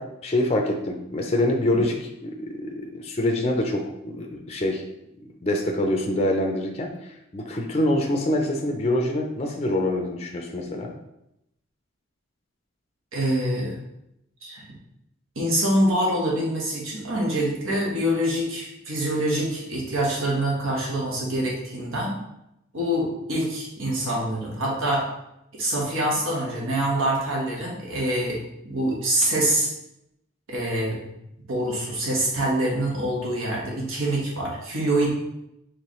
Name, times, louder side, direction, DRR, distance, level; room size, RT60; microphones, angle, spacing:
voice 1, 0.0-2.0 2.2-4.8 5.4-10.9, left 1 dB, 30° left, 2 dB, 0.4 m, -25 dB
voice 2, 13.1-13.7 14.4-14.6 15.3-22.2 22.7-25.1 25.5-28.4 28.6-29.7 30.5-31.1 31.5-35.1, right 1 dB, 80° right, -3 dB, 1.2 m, -25 dB
4.6 x 3.1 x 3.1 m, 0.83 s
head